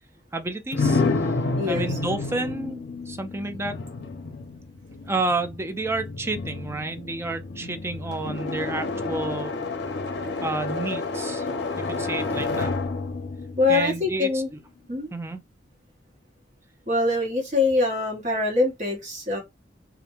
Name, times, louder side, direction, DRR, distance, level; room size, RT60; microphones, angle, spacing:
voice 1, 0.3-1.3 1.7-3.8 5.0-9.5 10.4-11.5 11.8-12.7 13.7-14.6 15.1-15.4, right 2 dB, 15° right, 0.3 m, -30 dB
sound 1, 0.7-14.5, left 3 dB, 60° left, 0.6 m, -30 dB
voice 2, 1.6-1.9 13.6-14.5 14.9-15.1 16.9-19.4, left 3 dB, 40° right, 1.2 m, -23 dB
2.4 x 2.2 x 2.9 m
head